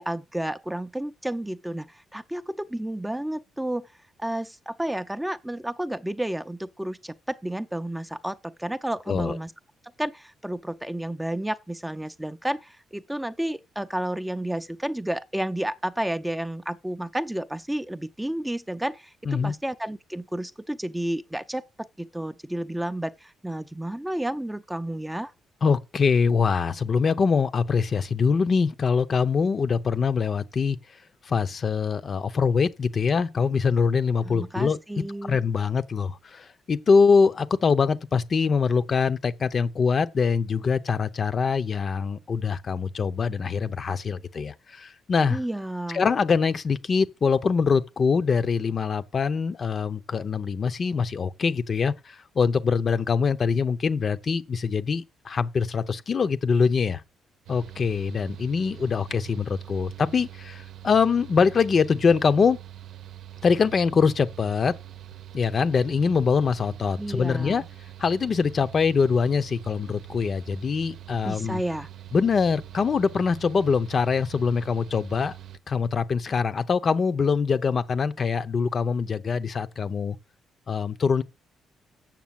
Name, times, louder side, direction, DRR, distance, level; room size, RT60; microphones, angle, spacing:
voice 1, 0.0-3.9 4.2-9.5 10.0-25.3 34.2-35.4 45.3-46.1 67.0-67.7 71.2-71.9, right 1 dB, 5° right, 0.5 m, -31 dB
voice 2, 25.6-30.8 31.3-34.8 35.3-45.4 45.9-57.0 57.5-62.6 63.4-64.7 65.3-67.6 68.0-71.6 72.1-75.3 75.7-80.2 80.7-81.2, left 5 dB, 45° left, 0.7 m, -23 dB
Mechanical fan, 57.5-75.6, right 12 dB, 75° right, 0.7 m, -44 dB
7.4 x 6.6 x 7.4 m
cardioid pair, 90°, 0 cm